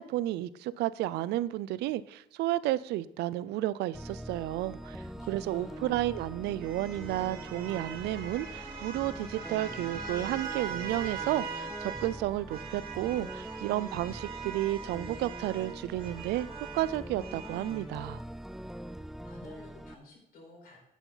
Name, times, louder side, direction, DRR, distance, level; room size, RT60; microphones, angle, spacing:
voice 1, 0.0-5.0 5.3-16.5 16.7-18.2, right 15 dB, 80° right, 18 dB, 0.4 m, -32 dB
sound 1, 3.9-19.9, right 1 dB, ahead, 0.3 m, -43 dB
voice 2, 5.0-6.0 19.2-20.8, left 2 dB, 60° left, 0 dB, 4.6 m, -53 dB
sound 2, 5.5-12.2 12.5-17.9, right 6 dB, 60° right, 2.0 m, -42 dB
10.5 x 8.3 x 4.0 m, 0.83 s
cardioid pair, 110°, 17 cm